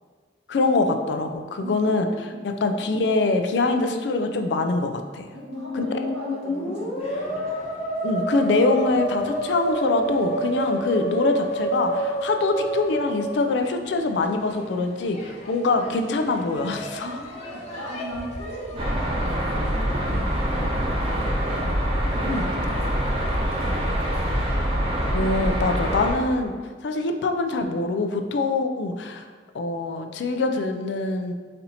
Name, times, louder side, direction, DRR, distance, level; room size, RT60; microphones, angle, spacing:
voice 1, 0.5-5.3 5.7-5.8 8.0-17.1 22.2-22.4 25.1-26.5 26.8-29.2 29.5-31.3, left 3 dB, 70° left, 6 dB, 0.4 m, -24 dB
voice 2, 1.6-2.5 5.3-7.4 17.0-21.7 22.0-24.4, right 1 dB, 65° right, -6 dB, 1.4 m, -38 dB
Musical instrument, 5.3-14.1, right 1 dB, 55° left, 1.1 m, -28 dB
sound 1, 7.0-25.2, left 1 dB, 35° left, 0.8 m, -43 dB
sound 2, 18.8-26.1, equal, 30° right, 0.8 m, -25 dB
4.2 x 2.7 x 4.0 m, 1.5 s
head